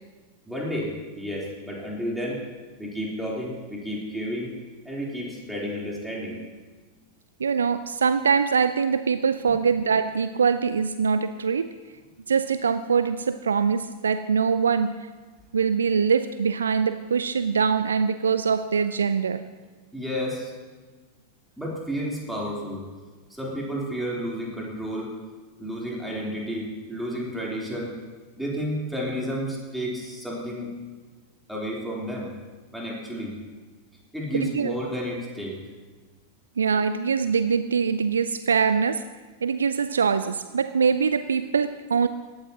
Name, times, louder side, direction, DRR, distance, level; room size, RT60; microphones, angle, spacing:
voice 1, 0.5-2.4 2.8-4.5 4.9-6.4 19.9-20.5 21.6-22.8 23.3-25.1 25.6-28.0 28.4-30.7 31.5-32.3 32.7-33.3 34.1-35.6, equal, ahead, -4 dB, 3.5 m, -31 dB
voice 2, 7.4-11.7 12.3-15.1 15.5-19.4 34.3-34.7 36.6-39.0 39.4-42.1, right 6 dB, 70° right, 12 dB, 0.3 m, -23 dB
17.5 x 13.0 x 2.9 m, 1.4 s
figure-of-eight pair, 90°, 0 cm